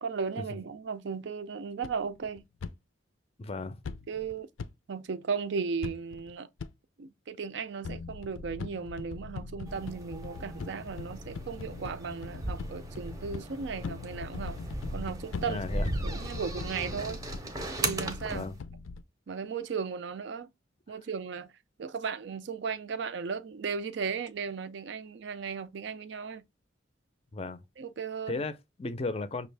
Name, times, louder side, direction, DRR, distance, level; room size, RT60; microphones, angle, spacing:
voice 1, 0.0-2.4 4.1-4.5 4.9-6.5 7.0-14.6 14.9-15.6 16.0-17.2 17.8-18.5 19.3-20.5 20.9-21.5 21.8-26.4 27.8-28.4, right 5 dB, 60° right, 0.4 m, -36 dB
sound 1, 1.8-2.7 3.8-4.7 5.8-6.3 6.6-6.7 7.8-19.0, left 4 dB, 85° left, 0.5 m, -41 dB
voice 2, 3.4-4.0 15.5-16.2 18.3-18.6 27.3-27.6 28.3-29.5, left 3 dB, 30° left, 0.4 m, -36 dB
sound 2, 9.6-18.5, right 1 dB, 20° right, 0.6 m, -37 dB
6.1 x 2.4 x 3.3 m
head